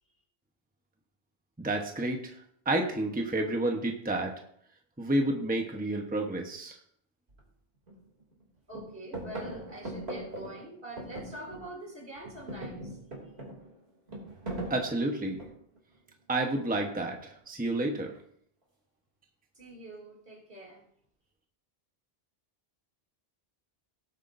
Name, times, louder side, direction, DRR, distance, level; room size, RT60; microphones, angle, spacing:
voice 1, 1.6-4.3 5.0-6.8 14.7-15.4 16.3-18.1, right 1 dB, 10° right, 2 dB, 1.0 m, -30 dB
sound 1, 7.3-7.4 7.9-8.4 8.7-11.9 12.2-15.8 16.7-17.2, right 1 dB, 85° right, 3.2 m, -41 dB
voice 2, 8.7-13.0 19.5-20.8, right 1 dB, 65° right, -1 dB, 3.2 m, -45 dB
18.0 x 8.1 x 2.7 m, 0.66 s
omnidirectional pair, 1.0 m